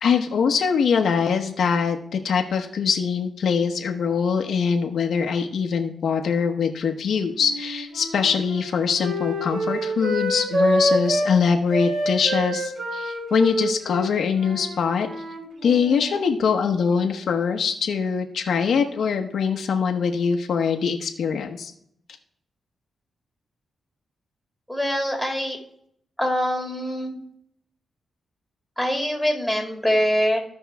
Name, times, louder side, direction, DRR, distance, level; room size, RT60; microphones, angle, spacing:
voice 1, 0.0-15.1 15.6-21.7, left 6 dB, 70° left, 4 dB, 0.9 m, -23 dB
Wind instrument woodwind instrument, 7.4-11.3 11.7-16.1, equal, 60° right, 2.8 m, -27 dB
voice 2, 24.7-25.6 26.2-27.2 28.8-30.4, equal, ahead, 1 dB, 2.5 m, -24 dB
15.5 x 5.4 x 3.4 m, 0.69 s
cardioid pair, 105°, 0 cm